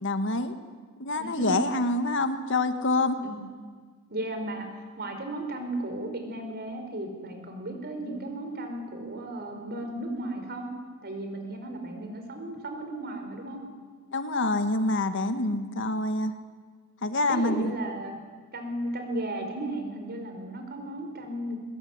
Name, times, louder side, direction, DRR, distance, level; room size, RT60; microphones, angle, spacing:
voice 1, 0.0-0.5 1.0-3.2 11.9-12.2 14.1-16.3 17.0-17.8, left 2 dB, 60° left, 8 dB, 1.9 m, -26 dB
voice 2, 1.2-1.5 3.2-3.4 4.1-4.7 5.0-10.7 11.0-13.6 17.3-18.2 18.5-21.6, right 1 dB, 50° right, 5 dB, 5.1 m, -35 dB
22.5 x 21.0 x 9.8 m, 1.6 s
head